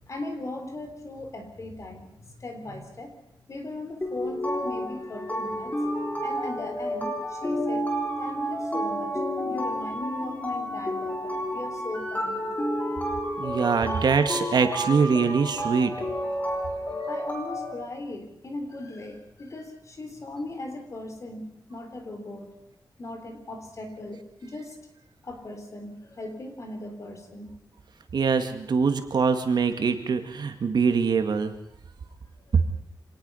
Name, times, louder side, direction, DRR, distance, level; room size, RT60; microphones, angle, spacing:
voice 1, 0.0-3.2 3.5-5.7 6.2-7.9 8.2-12.4 13.9-14.1 17.1-22.5 23.0-24.8 25.2-27.5 32.5-32.6, left 2 dB, 40° left, 5 dB, 3.9 m, -38 dB
sound 1, 4.0-17.7, equal, 20° left, 3.8 m, -30 dB
voice 2, 13.4-15.9 28.1-31.5 32.5-32.6, right 5 dB, 60° right, 8 dB, 2.0 m, -23 dB
26.0 x 19.0 x 5.7 m, 0.78 s
wide cardioid pair, 170°, 8 cm